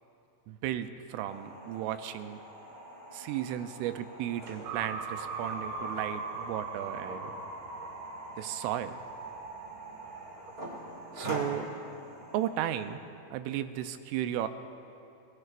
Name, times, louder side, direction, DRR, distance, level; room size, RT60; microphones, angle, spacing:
voice 1, 0.5-2.4 3.1-7.3 8.4-9.0 11.2-11.7 12.3-13.0 13.3-14.5, right 12 dB, 90° right, 9 dB, 3.2 m, -34 dB
sound 1, 1.3-12.9, equal, 30° right, 1.0 m, -45 dB
sound 2, 4.6-11.2, right 4 dB, 65° right, 2.9 m, -40 dB
29.5 x 17.0 x 2.5 m, 2.7 s
omnidirectional pair, 5.5 m